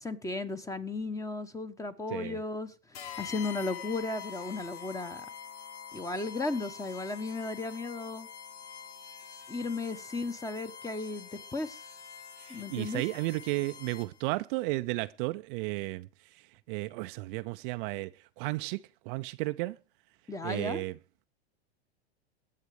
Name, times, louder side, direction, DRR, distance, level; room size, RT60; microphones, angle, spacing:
voice 1, 0.0-2.7 3.2-5.3 5.9-8.3 9.5-11.8 12.5-13.0 20.3-20.8, left 3 dB, 10° left, 1.1 m, -35 dB
sound 1, 2.9-14.3, left 7 dB, 80° left, 1.4 m, -45 dB
voice 2, 12.4-16.1 16.7-18.1 18.4-18.8 19.1-19.8 20.4-20.9, right 22 dB, 50° right, 0.5 m, -33 dB
18.0 x 7.4 x 4.9 m
hypercardioid pair, 120°, 33 cm